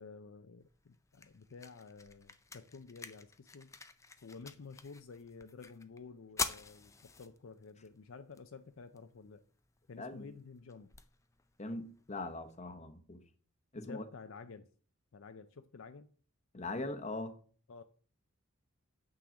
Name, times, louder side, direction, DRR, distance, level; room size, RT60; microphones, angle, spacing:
voice 1, 0.0-3.7 4.2-9.4 9.9-10.9 13.8-14.7 15.1-16.1 17.7-17.8, left 4 dB, 65° left, 0.5 m, -51 dB
sound 1, 0.6-12.6, left 4 dB, 15° left, 0.5 m, -47 dB
voice 2, 10.0-10.3 11.6-13.2 13.7-14.0 16.5-17.4, left 2 dB, 30° left, 0.9 m, -41 dB
8.8 x 3.9 x 7.0 m
head